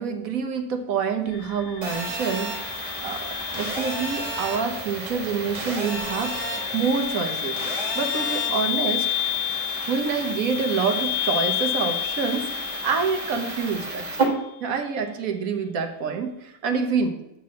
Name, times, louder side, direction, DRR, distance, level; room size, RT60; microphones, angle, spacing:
voice 1, 0.0-9.1 9.8-14.3 14.6-17.2, right 5 dB, 60° right, 6 dB, 1.3 m, -27 dB
sound 1, 1.3-14.3, left 14 dB, 25° left, 1.2 m, -31 dB
Telephone, 1.8-14.2, right 2 dB, 25° right, 1.8 m, -32 dB
7.3 x 4.7 x 7.0 m, 0.89 s
omnidirectional pair, 1.8 m